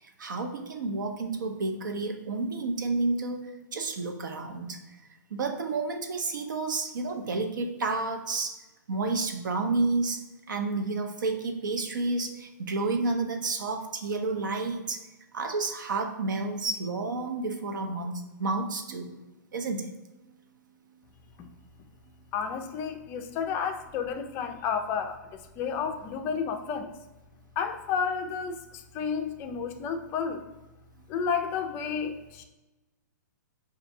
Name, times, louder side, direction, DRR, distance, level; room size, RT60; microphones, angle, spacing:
voice 1, 0.0-3.4 3.7-4.8 5.3-8.6 8.9-10.2 10.5-15.0 15.3-19.2 19.5-19.9, right 3 dB, 80° right, 5 dB, 0.7 m, -30 dB
voice 2, 22.3-26.9 27.6-30.4 31.1-32.4, left 6 dB, 20° left, 5 dB, 0.3 m, -31 dB
5.7 x 2.6 x 2.6 m, 1.1 s
hypercardioid pair, 150°, 10 cm